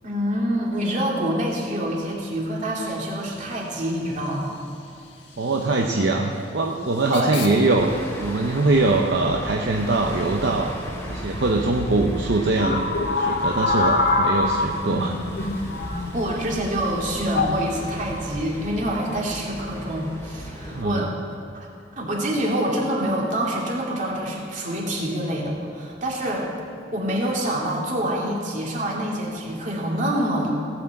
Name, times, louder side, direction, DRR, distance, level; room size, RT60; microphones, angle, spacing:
voice 1, 0.0-4.5 7.1-7.5 16.0-21.1 21.5-21.7 22.0-26.5 26.9-30.5, right 1 dB, 40° right, -3 dB, 2.5 m, -26 dB
Hiss / Train / Alarm, 2.4-12.0, left 4 dB, 75° left, 1.6 m, -41 dB
voice 2, 5.4-7.9 8.2-10.7 11.1-12.8 13.1-15.1 20.7-21.1, right 2 dB, 65° right, 1 dB, 0.8 m, -22 dB
sound 1, 7.8-20.8, equal, 15° left, 1.3 m, -36 dB
sound 2, 12.6-16.4 17.3-17.6 18.6-18.9, left 2 dB, 55° left, 0.9 m, -24 dB
17.0 x 6.0 x 7.7 m, 2.4 s
head